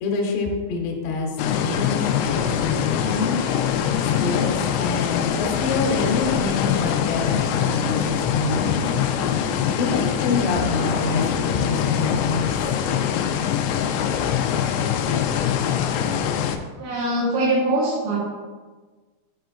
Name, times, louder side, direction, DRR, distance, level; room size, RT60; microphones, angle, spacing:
voice 1, 0.0-3.3 4.2-9.0 9.8-12.5, left 3 dB, 70° left, 0 dB, 2.9 m, -26 dB
sound 1, 1.4-16.6, left 8 dB, 90° left, 2.6 m, -23 dB
voice 2, 16.8-18.2, right 1 dB, 75° right, -7 dB, 3.4 m, -22 dB
11.0 x 5.0 x 2.3 m, 1.4 s
omnidirectional pair, 5.7 m